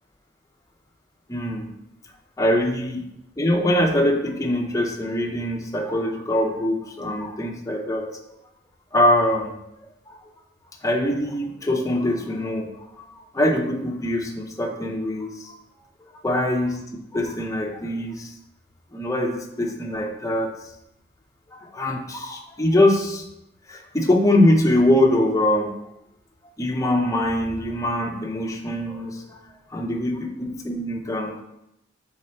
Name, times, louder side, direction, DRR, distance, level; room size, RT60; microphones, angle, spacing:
voice 1, 1.3-1.7 2.4-3.0 3.4-8.1 8.9-9.5 10.1-10.2 10.8-12.7 13.0-13.1 13.3-15.6 16.2-16.8 17.1-18.3 18.9-20.5 21.5-23.2 23.7-25.7 26.6-29.4 29.7-31.4, left 1 dB, 15° left, 2 dB, 0.6 m, -23 dB
5.3 x 4.1 x 4.3 m, 0.86 s
head